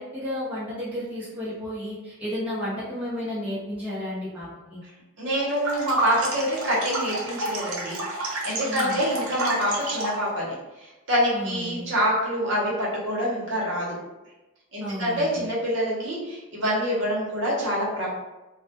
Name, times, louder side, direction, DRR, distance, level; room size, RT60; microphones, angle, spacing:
voice 1, 0.0-4.8 8.6-9.0 11.3-11.9 14.8-15.4, left 1 dB, 5° right, -10 dB, 0.6 m, -32 dB
voice 2, 5.2-14.0 14.7-18.1, equal, 60° right, -5 dB, 0.8 m, -26 dB
sound 1, 5.5-10.3, right 2 dB, 90° right, 0.6 m, -30 dB
2.1 x 2.1 x 2.8 m, 1.0 s
head